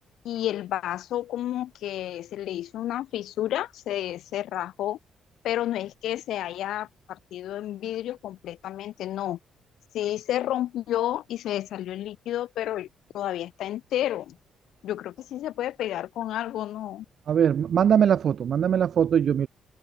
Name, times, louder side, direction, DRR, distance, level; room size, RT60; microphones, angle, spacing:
voice 1, 0.2-5.0 5.4-9.4 9.9-12.9 13.1-14.4 14.8-17.0, left 12 dB, 80° left, 6.3 m, -31 dB
voice 2, 17.3-19.5, right 8 dB, 60° right, 2.0 m, -21 dB
cardioid pair, 90°, 0 cm